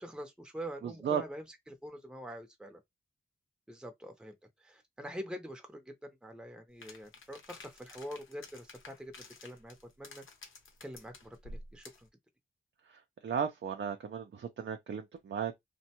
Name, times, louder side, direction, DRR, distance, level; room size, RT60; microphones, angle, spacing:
voice 1, 0.0-2.8 3.7-4.4 4.6-10.2 10.8-11.9, equal, 5° right, 0.7 m, -45 dB
voice 2, 0.8-1.2 13.2-15.6, right 7 dB, 60° right, 0.5 m, -35 dB
sound 1, 6.8-12.1, left 2 dB, 70° left, 0.8 m, -51 dB
2.5 x 2.2 x 2.8 m
cardioid pair, 45°, 21 cm